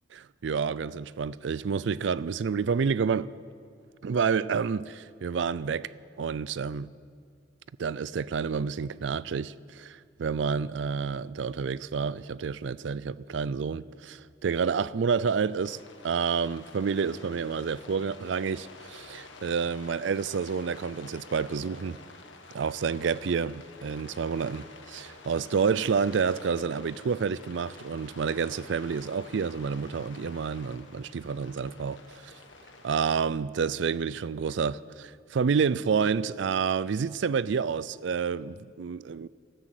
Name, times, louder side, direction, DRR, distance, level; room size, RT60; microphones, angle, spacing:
voice 1, 0.1-3.3 4.0-5.9 6.2-6.9 7.8-15.8 16.0-22.0 22.5-32.3 32.8-39.3, right 6 dB, 70° right, 0.4 m, -29 dB
Rain, 15.6-33.2, left 3 dB, 80° left, 1.5 m, -49 dB
13.5 x 11.5 x 8.2 m
head